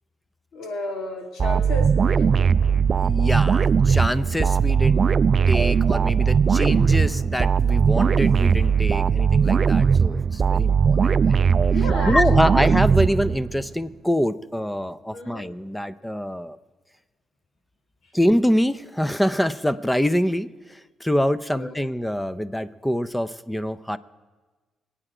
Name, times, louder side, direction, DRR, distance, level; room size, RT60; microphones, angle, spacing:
voice 1, 0.5-2.5 11.7-12.5 15.1-15.5 21.5-21.9, left 2 dB, 70° left, 3 dB, 2.5 m, -32 dB
sound 1, 1.4-13.7, right 6 dB, 45° right, 0.4 m, -19 dB
voice 2, 2.9-5.1 5.5-11.4 12.0-16.6 18.1-24.0, equal, 5° left, 16 dB, 0.6 m, -25 dB
24.5 x 8.9 x 4.9 m, 1.3 s
cardioid pair, 90°, 0 cm